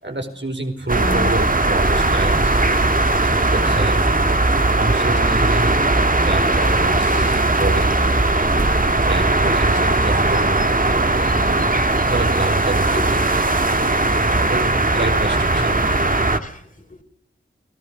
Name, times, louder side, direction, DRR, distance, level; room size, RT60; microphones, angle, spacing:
voice 1, 0.0-2.6 3.1-4.0 4.7-5.7 6.2-7.9 9.1-10.6 11.1-11.7 12.1-13.4 14.4-15.8, right 2 dB, 60° right, 5 dB, 4.7 m, -27 dB
voice 2, 0.9-1.3 13.0-13.4 16.1-17.0, left 2 dB, 40° left, 6 dB, 4.0 m, -32 dB
sound 1, 0.9-16.4, right 2 dB, 40° right, 1.8 m, -18 dB
30.0 x 18.5 x 6.3 m, 0.74 s
wide cardioid pair, 50°, 21 cm